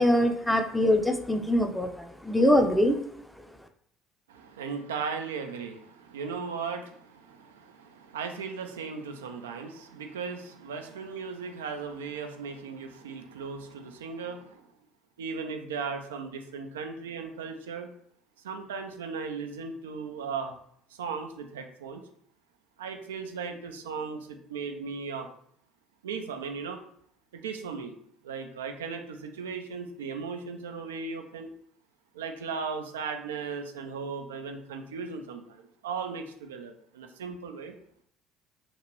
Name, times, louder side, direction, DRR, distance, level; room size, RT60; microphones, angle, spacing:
voice 1, 0.0-3.0, left 1 dB, 5° left, 5 dB, 0.5 m, -23 dB
voice 2, 4.3-14.6 15.2-17.9 18.4-20.6 21.0-22.0 22.8-25.3 26.0-26.8 27.4-27.9 28.2-31.5 32.1-37.7, right 5 dB, 85° right, 6 dB, 0.3 m, -37 dB
2.9 x 2.4 x 3.0 m, 0.66 s
hypercardioid pair, 65°, 0 cm